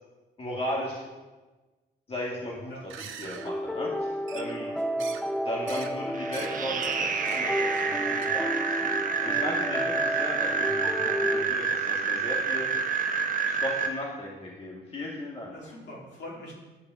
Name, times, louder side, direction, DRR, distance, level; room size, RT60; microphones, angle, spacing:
voice 1, 0.4-1.1 2.1-2.7 3.0-4.7 5.4-8.9 9.2-12.7 13.5-15.5, left 1 dB, 30° left, -3 dB, 2.2 m, -36 dB
sound 1, 2.8-3.5 4.3-4.7 5.0-5.3 5.7-5.9 6.2-6.5 6.8-7.0 7.3-7.4 7.7-7.9 8.2-8.3, right 9 dB, 80° right, 0.9 m, -43 dB
sound 2, 3.4-11.5, equal, 5° left, 0.5 m, -32 dB
voice 2, 4.6-5.2 9.8-9.9 15.5-16.5, left 1 dB, 60° left, -4 dB, 3.8 m, -44 dB
sound 3, 6.1-13.9, right 5 dB, 45° right, 1.2 m, -28 dB
10.0 x 4.8 x 7.6 m, 1.2 s
cardioid pair, 90°, 20 cm